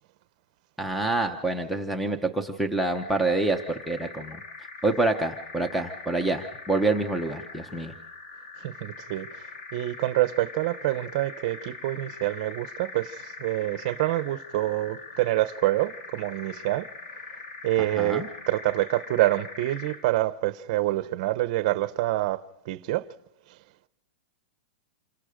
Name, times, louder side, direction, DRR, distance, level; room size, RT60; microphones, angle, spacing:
voice 1, 0.8-4.4 4.8-7.9 17.8-18.3, right 2 dB, ahead, 0.8 m, -27 dB
sound 1, 2.7-20.1, left 4 dB, 90° left, 4.5 m, -42 dB
voice 2, 8.6-9.3 9.7-16.9 17.6-23.0, right 16 dB, 40° right, 0.8 m, -26 dB
28.0 x 24.5 x 5.1 m
supercardioid pair, 175°, 6 cm